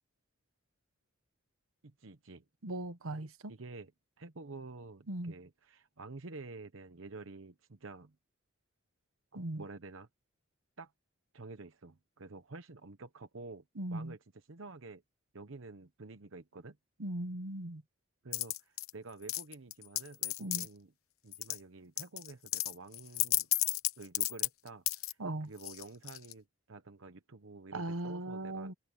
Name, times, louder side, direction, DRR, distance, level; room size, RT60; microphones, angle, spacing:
voice 1, 1.8-2.7 3.5-3.9 4.2-8.2 9.3-10.1 10.8-10.9 11.3-13.6 13.9-15.0 15.3-16.8 18.2-20.9 21.2-23.5 24.0-25.2 25.4-28.7, right 3 dB, 70° right, 0.9 m, -49 dB
voice 2, 2.6-3.5 5.1-5.3 9.3-9.6 13.8-14.1 17.0-17.8 20.4-20.7 25.2-25.5 27.7-28.7, right 1 dB, 85° right, 1.2 m, -38 dB
sound 1, 18.3-18.9 19.3-20.7 21.3-21.6 22.0-25.1 25.6-26.3, left 16 dB, 90° left, 1.0 m, -33 dB
head